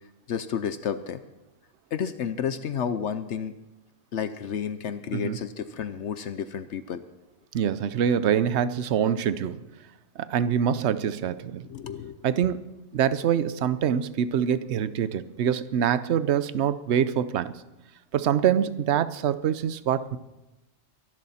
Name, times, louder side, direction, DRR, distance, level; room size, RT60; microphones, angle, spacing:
voice 1, 0.3-1.2 1.9-3.6 4.1-7.0 11.7-12.2, left 7 dB, 65° left, 12 dB, 0.9 m, -31 dB
voice 2, 7.5-9.6 10.2-11.7 12.2-17.5 18.1-20.2, right 9 dB, 65° right, 15 dB, 0.9 m, -25 dB
23.5 x 11.0 x 4.2 m, 0.98 s
omnidirectional pair, 1.3 m